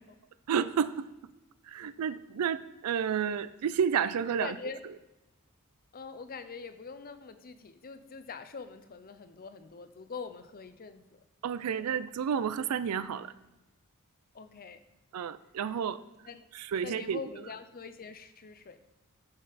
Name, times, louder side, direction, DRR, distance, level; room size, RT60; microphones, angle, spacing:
voice 1, 0.5-1.1 1.6-4.6 11.4-13.3 15.1-16.0 16.5-17.2, right 7 dB, 80° right, 15 dB, 0.4 m, -31 dB
voice 2, 4.4-4.8 5.9-11.0 14.3-14.8 16.3-16.4 16.8-18.8, left 5 dB, 40° left, 11 dB, 0.6 m, -43 dB
11.0 x 5.3 x 4.1 m, 1.0 s
head